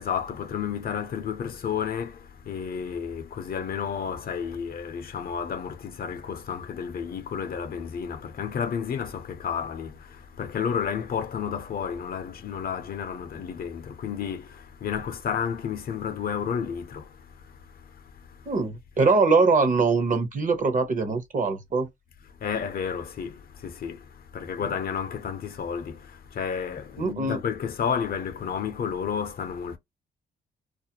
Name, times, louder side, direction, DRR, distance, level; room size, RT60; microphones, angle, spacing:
voice 1, 0.0-2.2 2.5-17.1 22.4-24.0 24.3-29.8, left 7 dB, 50° left, 0.5 m, -31 dB
voice 2, 18.5-21.9 27.0-27.4, right 4 dB, 40° right, 0.8 m, -22 dB
2.4 x 2.1 x 2.8 m
cardioid pair, 80°, 20 cm